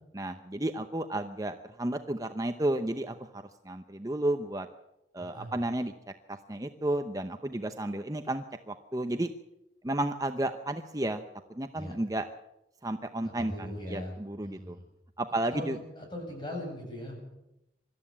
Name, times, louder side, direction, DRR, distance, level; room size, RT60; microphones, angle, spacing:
voice 1, 0.1-4.7 5.1-5.9 6.3-9.3 9.8-11.2 11.5-12.3 12.8-14.8 15.2-15.8, right 1 dB, 20° right, 7 dB, 0.8 m, -32 dB
voice 2, 5.2-5.5 11.8-11.9 13.4-14.1 14.4-14.8 15.5-17.2, left 1 dB, 25° left, 1 dB, 7.8 m, -39 dB
25.0 x 13.5 x 8.7 m, 0.90 s
head